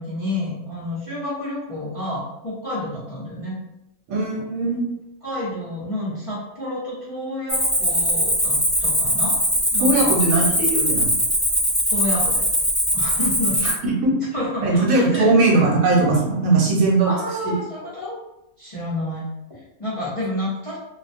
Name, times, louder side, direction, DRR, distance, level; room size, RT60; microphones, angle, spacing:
voice 1, 0.0-3.6 5.2-9.4 9.7-10.1 11.9-12.4 12.9-13.7 14.3-15.6 17.0-18.1 18.6-19.2 19.5-20.8, left 1 dB, 35° left, -10 dB, 0.5 m, -29 dB
voice 2, 4.1-4.8 9.8-11.1 13.6-13.7 14.0-14.1 14.6-17.1, right 3 dB, 75° right, -2 dB, 1.1 m, -19 dB
Cricket, 7.5-13.7, equal, ahead, 1.0 m, -21 dB
2.4 x 2.2 x 2.5 m, 0.85 s
omnidirectional pair, 1.5 m